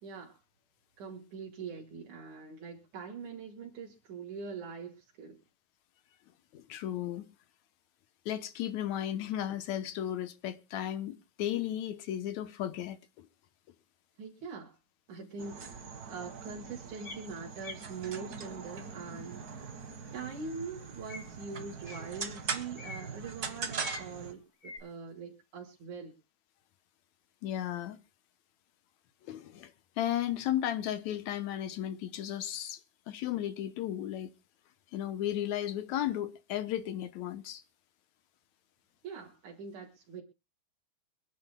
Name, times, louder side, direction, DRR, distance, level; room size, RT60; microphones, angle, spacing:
voice 1, 0.0-0.4 1.0-5.4 14.2-14.8 15.1-19.8 20.1-26.1 39.0-40.2, right 5 dB, 85° right, 3.5 m, -43 dB
voice 2, 6.5-7.3 8.3-13.3 27.4-28.0 29.3-29.7 30.0-32.8 33.1-34.3 34.9-37.6, left 11 dB, 75° left, 2.2 m, -34 dB
sound 1, 15.4-24.3, right 5 dB, 40° right, 1.5 m, -41 dB
sound 2, 17.0-17.2 17.6-17.8 21.1-21.2 21.8-22.0 22.8-23.1 23.7-24.1 24.6-24.8, left 3 dB, 30° left, 2.8 m, -43 dB
26.5 x 10.0 x 2.2 m
omnidirectional pair, 3.4 m